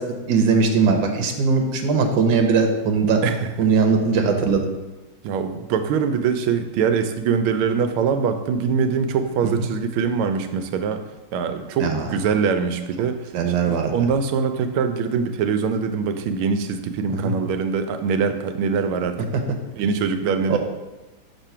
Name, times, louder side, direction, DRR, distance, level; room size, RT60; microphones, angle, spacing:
voice 1, 0.0-3.2 3.6-4.7 9.4-9.5 11.8-12.1 13.3-13.9 17.1-17.3 20.5-20.6, right 5 dB, 70° right, 3 dB, 1.4 m, -20 dB
voice 2, 3.2-3.7 5.2-11.0 11.3-19.2 19.8-20.6, right 6 dB, 85° right, 8 dB, 1.4 m, -23 dB
6.0 x 3.5 x 5.5 m, 1.1 s
omnidirectional pair, 2.2 m